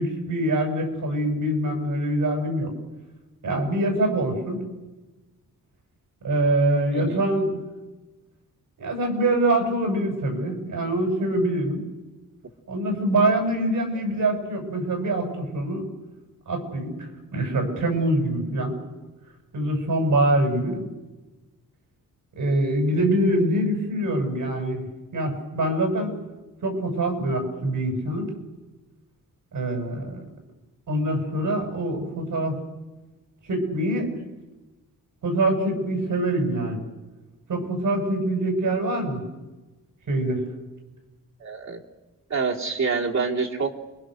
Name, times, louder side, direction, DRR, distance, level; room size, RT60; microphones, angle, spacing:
voice 1, 0.0-2.7 3.4-4.6 6.2-7.6 8.8-11.8 12.7-15.9 16.5-18.8 19.5-20.9 22.4-24.9 25.1-26.1 26.6-28.3 29.5-30.2 30.9-32.6 33.4-34.2 35.2-36.8 37.5-39.2 40.1-40.5, right 1 dB, 75° right, 3 dB, 6.9 m, -24 dB
voice 2, 41.4-41.8 42.3-43.7, right 4 dB, 55° right, -1 dB, 3.4 m, -26 dB
29.5 x 23.0 x 6.5 m, 1.2 s
cardioid pair, 100°, 33 cm